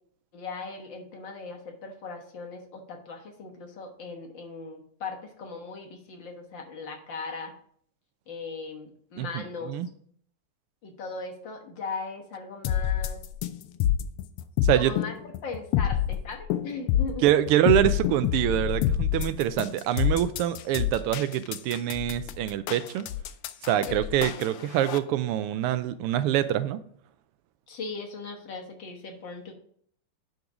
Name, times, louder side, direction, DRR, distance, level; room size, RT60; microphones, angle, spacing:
voice 1, 0.3-7.5 8.3-9.7 10.8-13.2 14.7-17.3 23.9-24.1 27.7-29.5, left 4 dB, 60° left, 2 dB, 1.9 m, -38 dB
voice 2, 9.2-9.9 14.6-14.9 17.2-23.1 23.7-26.8, right 12 dB, 90° right, 13 dB, 1.6 m, -25 dB
sound 1, 12.6-25.0, left 11 dB, 80° left, 1.5 m, -27 dB
10.5 x 4.0 x 5.0 m, 0.62 s
omnidirectional pair, 2.4 m